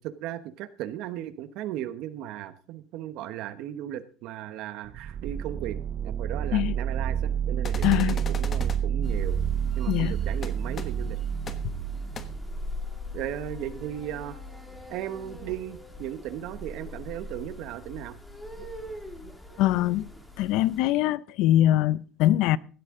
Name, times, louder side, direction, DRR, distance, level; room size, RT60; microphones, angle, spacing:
voice 1, 0.0-5.8 6.0-9.4 9.8-11.2 13.1-14.4 14.9-18.2, right 12 dB, 65° right, 1.1 m, -36 dB
sound 1, 4.9-12.6, right 9 dB, 40° right, 0.6 m, -29 dB
Dry Assault Rifle Automatic, 7.6-8.8 10.4-10.5 10.8-10.9 11.5-11.6 12.1-12.2, left 5 dB, 30° left, 1.2 m, -37 dB
voice 2, 7.8-8.2 9.9-10.1 19.6-20.1 20.4-22.6, left 14 dB, 70° left, 0.5 m, -23 dB
sound 2, 9.0-20.8, left 2 dB, 10° left, 2.2 m, -41 dB
16.5 x 12.5 x 3.8 m
cardioid pair, 140°, 0 cm